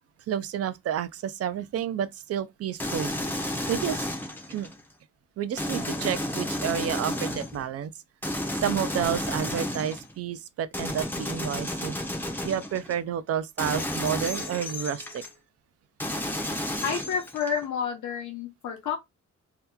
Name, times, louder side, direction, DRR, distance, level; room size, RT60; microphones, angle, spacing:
voice 1, 0.3-3.1 3.7-4.1 4.5-4.7 5.4-7.9 8.6-11.9 12.4-15.2, right 9 dB, 55° right, 0.4 m, -30 dB
sound 1, 2.8-4.8 5.6-7.6 8.2-10.1 10.7-13.0 13.6-15.3 16.0-17.7, left 1 dB, 5° left, 0.5 m, -32 dB
voice 2, 16.8-19.0, left 6 dB, 80° left, 0.7 m, -30 dB
2.8 x 2.2 x 3.4 m
wide cardioid pair, 145°, 30 cm